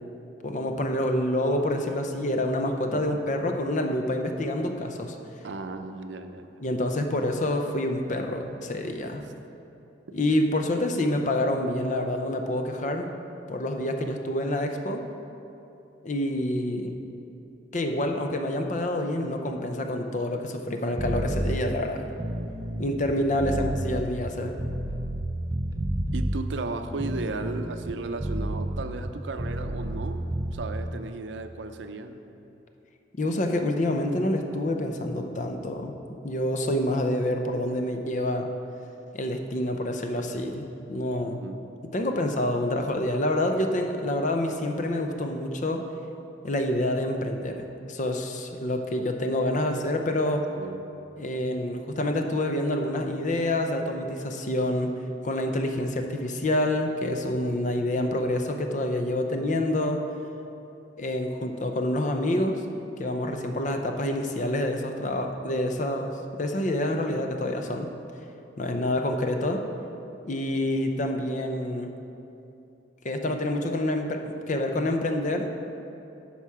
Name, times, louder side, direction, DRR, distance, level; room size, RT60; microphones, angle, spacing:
voice 1, 0.4-5.2 6.6-9.2 10.1-13.1 13.5-15.0 16.0-17.0 17.7-22.1 22.8-24.6 33.2-35.9 36.2-38.5 39.1-41.4 41.9-45.8 46.4-50.4 51.2-54.9 55.2-60.0 61.0-62.6 63.0-66.1 66.4-67.9 68.6-69.6 70.2-71.9 73.0-75.5, left 1 dB, 45° left, 4 dB, 0.6 m, -27 dB
voice 2, 5.4-6.6 23.5-23.6 26.1-32.3 41.2-41.6 50.6-50.9, right 3 dB, 85° right, 8 dB, 0.5 m, -35 dB
sound 1, 21.0-21.6 22.1-25.3 25.5-26.4 26.9-30.1 30.3-30.6, right 1 dB, 20° right, 0.4 m, -30 dB
10.0 x 5.8 x 4.8 m, 2.8 s
head